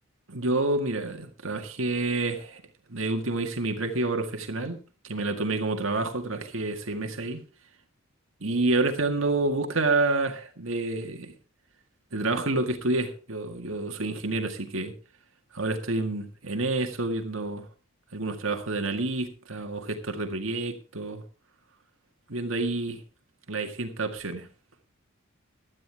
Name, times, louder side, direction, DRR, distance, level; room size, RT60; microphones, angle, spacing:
voice 1, 0.3-2.6 2.9-4.8 5.0-7.4 8.4-11.3 12.1-14.9 15.5-17.7 18.1-21.2 22.3-23.0 23.5-24.5, right 2 dB, 70° right, 1.9 m, -28 dB
16.0 x 12.0 x 3.5 m
head